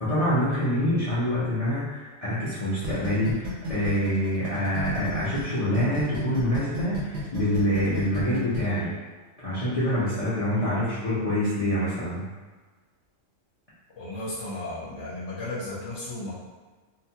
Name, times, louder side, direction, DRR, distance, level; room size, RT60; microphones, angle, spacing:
voice 1, 0.0-8.9 9.4-12.2, equal, 40° left, -12 dB, 0.6 m, -26 dB
sound 1, 2.8-5.4 5.7-8.6, equal, 80° right, 0.9 m, -32 dB
voice 2, 14.0-16.3, left 2 dB, 70° left, -7 dB, 1.0 m, -34 dB
2.8 x 2.2 x 2.7 m, 1.3 s
omnidirectional pair, 1.3 m